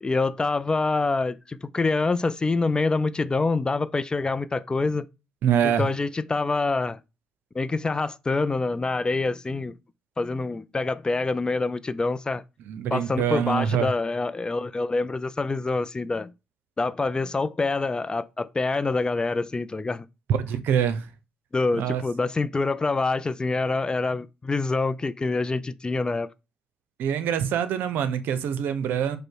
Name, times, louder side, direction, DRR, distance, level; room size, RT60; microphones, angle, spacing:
voice 1, 0.0-5.1 5.6-7.0 7.5-9.7 10.2-12.4 12.9-16.3 16.8-20.1 21.5-26.3, left 3 dB, 25° left, 0.4 m, -26 dB
voice 2, 5.4-5.9 12.6-13.9 20.3-21.0 21.7-22.0 27.0-29.2, right 8 dB, 75° right, 0.6 m, -25 dB
5.0 x 2.1 x 4.6 m
supercardioid pair, 65°, 3 cm